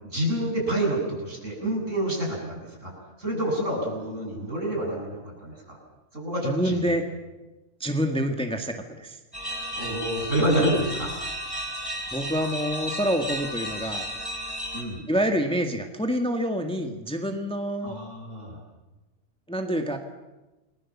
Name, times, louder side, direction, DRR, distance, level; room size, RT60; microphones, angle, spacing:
voice 1, 0.0-2.9 3.2-5.8 6.1-6.9 9.7-11.1 14.7-15.0 17.8-18.6, right 1 dB, 65° right, -1 dB, 8.4 m, -28 dB
voice 2, 6.4-7.0 7.8-9.2 12.1-14.1 15.1-18.0 19.5-20.0, equal, 5° left, 4 dB, 1.8 m, -27 dB
sound 1, 9.3-14.8, equal, 15° right, 5.2 m, -33 dB
30.0 x 21.5 x 7.4 m, 1.1 s
omnidirectional pair, 1.4 m